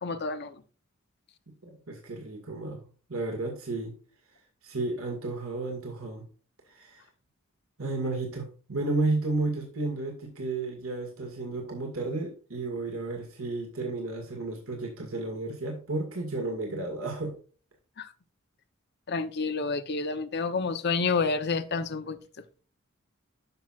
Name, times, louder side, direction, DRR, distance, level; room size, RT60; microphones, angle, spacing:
voice 1, 0.0-0.6 18.0-18.1 19.1-22.2, left 4 dB, 50° left, 0.8 m, -29 dB
voice 2, 1.6-2.8 3.1-3.9 4.6-6.3 6.7-7.0 7.8-17.3, right 2 dB, 85° right, 1.9 m, -32 dB
12.0 x 6.0 x 2.5 m
head